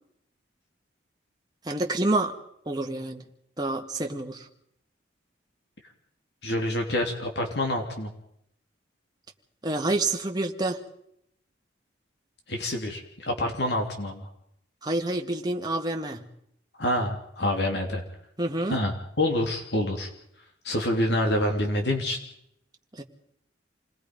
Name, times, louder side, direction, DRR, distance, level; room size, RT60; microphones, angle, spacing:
voice 1, 1.6-2.3 2.7-3.2 3.6-4.5 9.6-10.8 14.8-16.3 18.4-18.8 22.9-23.0, right 2 dB, 20° right, 2 dB, 2.0 m, -28 dB
voice 2, 6.4-8.1 12.5-14.3 16.8-18.0 18.7-20.1 20.6-22.2, left 1 dB, 60° left, 3 dB, 3.1 m, -27 dB
28.5 x 20.0 x 5.4 m, 0.73 s
head